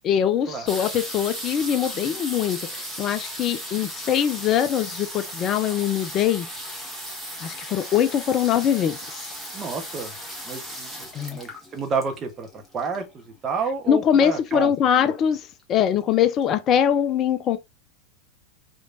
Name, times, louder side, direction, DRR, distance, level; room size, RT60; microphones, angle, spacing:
voice 1, 0.0-6.5 7.4-9.3 11.1-11.4 13.9-17.6, left 9 dB, 30° left, 0.4 m, -22 dB
sound 1, 0.7-13.2 14.0-14.1 14.3-14.7 15.0-15.6 16.1-16.2 16.4-16.5, equal, 5° right, 1.7 m, -36 dB
voice 2, 9.5-10.1 10.4-12.5 12.7-14.7 15.0-15.1, right 5 dB, 25° right, 1.2 m, -30 dB
5.0 x 3.0 x 2.7 m
figure-of-eight pair, 90°, 0 cm